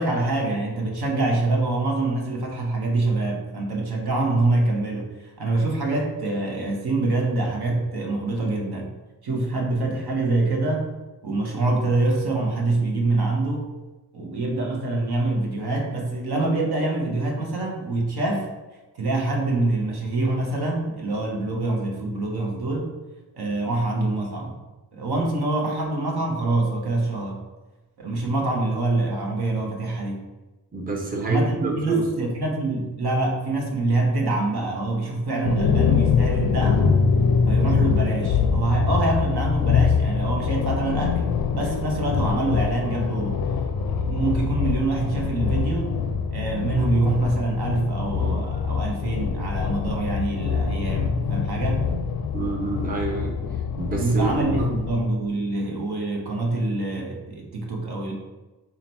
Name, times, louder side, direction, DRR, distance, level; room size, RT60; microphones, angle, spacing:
voice 1, 0.0-8.9 9.2-10.9 11.2-13.7 14.1-18.5 19.0-22.9 23.3-24.6 24.9-27.4 28.0-30.2 31.2-37.0 37.5-43.4 43.9-45.9 46.3-51.8 54.0-58.1, right 2 dB, 60° right, 0 dB, 1.0 m, -25 dB
voice 2, 30.7-32.1 52.3-53.4 53.8-54.7, right 3 dB, 20° right, 0 dB, 0.8 m, -27 dB
sound 1, 35.4-55.0, left 6 dB, 55° left, 0.5 m, -24 dB
3.8 x 2.2 x 4.2 m, 1.1 s
cardioid pair, 55°, 43 cm